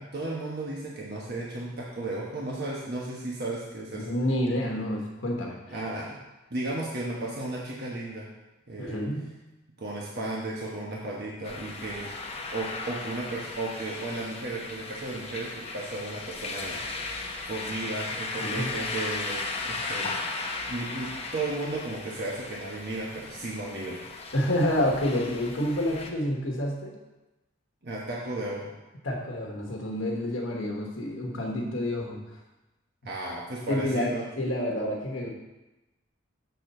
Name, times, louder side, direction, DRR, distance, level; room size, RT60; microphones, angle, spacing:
voice 1, 0.0-4.1 5.7-6.2 6.5-8.3 8.7-9.0 9.8-12.1 12.5-16.8 17.5-20.1 20.7-24.0 27.8-28.7 33.0-34.2, right 2 dB, 55° right, -4 dB, 1.1 m, -34 dB
voice 2, 3.9-5.6 8.8-9.2 18.4-18.7 24.3-26.9 29.0-32.2 33.7-35.3, left 1 dB, 70° left, -1 dB, 1.2 m, -28 dB
sound 1, 11.4-26.1, left 3 dB, 30° left, 0.8 m, -36 dB
6.6 x 4.2 x 6.5 m, 1.0 s
head